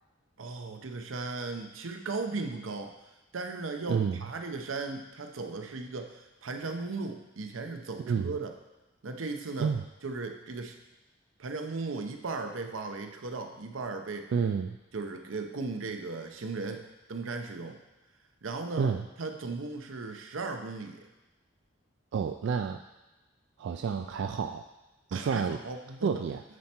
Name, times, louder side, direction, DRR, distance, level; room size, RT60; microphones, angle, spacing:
voice 1, 0.4-2.9 3.3-8.5 9.0-9.7 10.0-10.8 11.4-14.3 14.9-17.8 18.4-21.1 25.1-26.2, right 3 dB, 90° right, 5 dB, 0.7 m, -37 dB
voice 2, 3.9-4.2 8.1-8.4 9.6-9.8 14.3-14.8 18.8-19.0 22.1-22.8 23.6-24.7 25.1-25.6 26.0-26.4, right 6 dB, 65° right, 6 dB, 0.3 m, -29 dB
9.3 x 4.4 x 4.3 m, 1.1 s
head